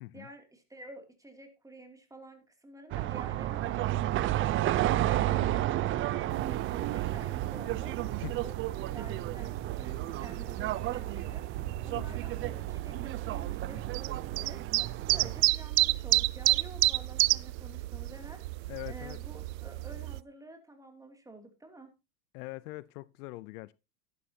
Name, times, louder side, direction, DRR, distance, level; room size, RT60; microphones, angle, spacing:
voice 1, 0.1-8.6 8.8-21.9, right 2 dB, 5° right, 2.7 m, -50 dB
sound 1, 2.9-15.4, right 14 dB, 25° right, 0.5 m, -32 dB
sound 2, 6.3-20.2, right 19 dB, 80° right, 0.6 m, -32 dB
voice 2, 18.7-19.2 22.3-23.7, left 21 dB, 65° left, 0.6 m, -42 dB
12.5 x 11.5 x 2.8 m
supercardioid pair, 120°, 49 cm